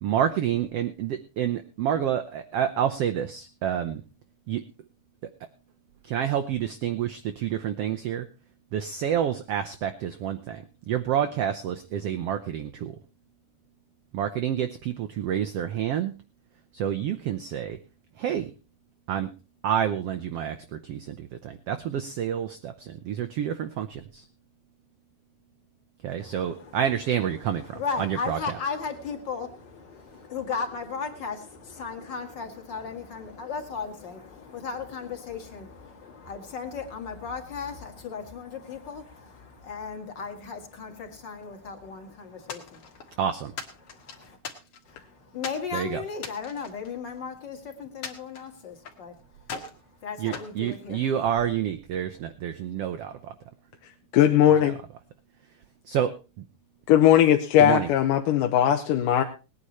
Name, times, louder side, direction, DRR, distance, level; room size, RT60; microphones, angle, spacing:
voice 1, 0.0-4.0 4.5-4.6 6.0-8.3 8.7-13.0 14.1-16.1 16.7-17.8 18.2-18.5 19.1-19.3 19.6-24.2 26.0-28.4 43.2-43.5 45.7-46.0 50.2-53.3 54.6-54.7 55.9-56.2 57.6-57.9, right 9 dB, 80° right, 8 dB, 1.3 m, -28 dB
voice 2, 26.2-26.8 27.4-43.2 43.8-44.4 44.9-49.1 50.0-51.0, left 5 dB, 40° left, 4 dB, 2.4 m, -36 dB
Wood panel board debris sharp impact hard, 42.5-43.1 43.6-45.0 45.4-45.7 46.1-47.5 48.0-49.0 49.4-49.8 50.3-51.4, left 5 dB, 55° left, 2.4 m, -40 dB
voice 3, 54.1-54.8 56.9-59.2, left 11 dB, 80° left, 5 dB, 2.5 m, -19 dB
19.5 x 9.7 x 4.2 m, 0.32 s
omnidirectional pair, 3.7 m